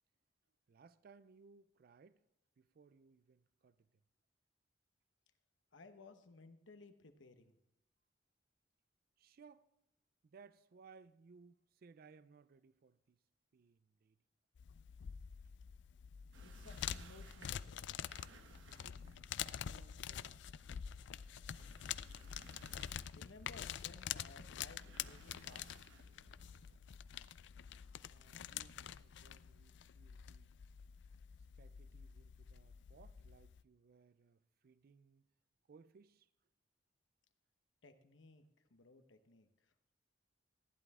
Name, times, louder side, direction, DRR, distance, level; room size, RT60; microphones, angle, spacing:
voice 1, 0.7-2.2 2.6-3.9 9.2-9.7 10.2-13.2 13.5-14.2 18.8-19.1 19.4-20.5 28.0-30.5 31.4-35.3 35.7-36.3, right 5 dB, 50° right, 0.4 m, -63 dB
voice 2, 5.7-7.6 16.4-18.1 23.1-26.0 37.8-39.7, left 3 dB, 80° left, 1.1 m, -60 dB
sound 1, 14.6-33.6, left 9 dB, 65° left, 0.4 m, -47 dB
sound 2, 16.3-26.8, right 3 dB, 75° right, 1.1 m, -62 dB
15.0 x 10.5 x 3.6 m
head